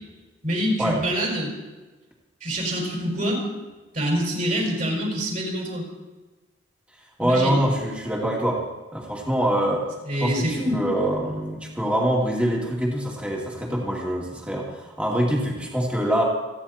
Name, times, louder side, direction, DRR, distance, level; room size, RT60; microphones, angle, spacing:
voice 1, 0.4-1.5 2.4-3.4 3.9-5.8 7.2-7.6 10.1-10.8, equal, 45° right, -1 dB, 5.5 m, -25 dB
voice 2, 7.2-8.6 8.9-9.8 10.2-16.2, right 1 dB, 5° right, -2 dB, 2.5 m, -24 dB
29.0 x 9.9 x 4.4 m, 1.2 s
head